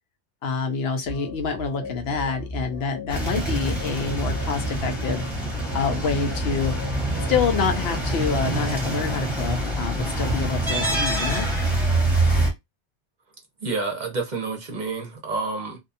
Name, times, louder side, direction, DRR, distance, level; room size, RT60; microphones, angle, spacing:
voice 1, 0.4-5.2 5.7-6.7 7.3-11.5, left 5 dB, 70° left, 0.8 m, -27 dB
sound 1, 1.0-8.4, left 1 dB, 20° left, 0.4 m, -35 dB
sound 2, 3.1-12.5, right 1 dB, ahead, 1.1 m, -25 dB
voice 2, 13.6-15.8, right 3 dB, 50° right, 0.7 m, -29 dB
2.6 x 2.2 x 2.6 m
omnidirectional pair, 1.1 m